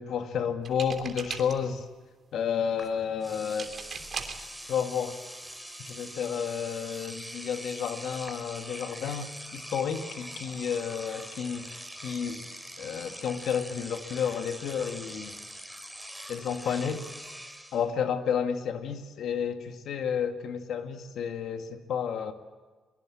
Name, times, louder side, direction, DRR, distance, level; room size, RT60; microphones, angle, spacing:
voice 1, 0.0-1.8 2.3-3.8 4.7-5.2 5.8-11.7 12.0-12.4 12.8-15.3 16.3-17.1 17.7-22.3, left 7 dB, 70° left, 6 dB, 2.1 m, -31 dB
sound 1, 0.6-1.8 3.6-4.5 5.5-5.6 5.9-6.2, right 5 dB, 45° right, 3.1 m, -39 dB
Engine / Domestic sounds home sounds, 2.8-2.9 3.2-17.9, equal, ahead, 3.0 m, -43 dB
22.5 x 22.0 x 8.7 m, 1.3 s
cardioid pair, 90°, 0 cm